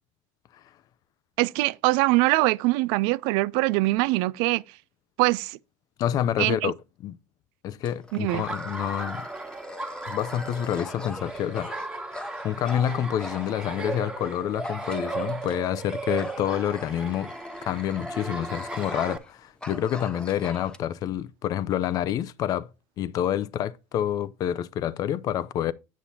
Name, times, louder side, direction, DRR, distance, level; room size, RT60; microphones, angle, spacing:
voice 1, 1.4-4.6 5.2-5.6 6.4-6.7 8.1-8.4, right 21 dB, 70° right, 0.4 m, -23 dB
voice 2, 6.0-6.7 7.0-7.1 7.6-9.3 10.1-11.7 12.4-17.3 17.7-22.7 23.0-25.7, left 10 dB, 50° left, 0.5 m, -28 dB
Dog, 7.8-14.0 14.6-15.8 16.2-19.3 19.6-20.8, left 1 dB, 10° left, 1.0 m, -42 dB
Laughter, 8.3-19.2, right 3 dB, 10° right, 1.4 m, -36 dB
8.4 x 6.9 x 2.8 m
hypercardioid pair, 90°, 8 cm